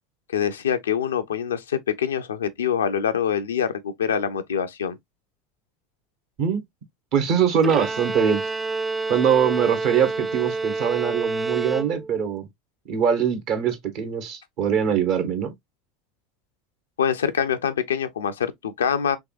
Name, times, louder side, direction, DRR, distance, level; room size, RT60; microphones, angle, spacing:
voice 1, 0.3-5.0 17.0-19.2, left 8 dB, 90° left, 0.4 m, -25 dB
voice 2, 7.1-8.4 9.1-12.5 12.9-15.5, right 7 dB, 60° right, 1.1 m, -22 dB
Bowed string instrument, 7.6-12.3, right 3 dB, 15° right, 0.4 m, -28 dB
3.6 x 3.0 x 2.3 m
hypercardioid pair, 80°, 0 cm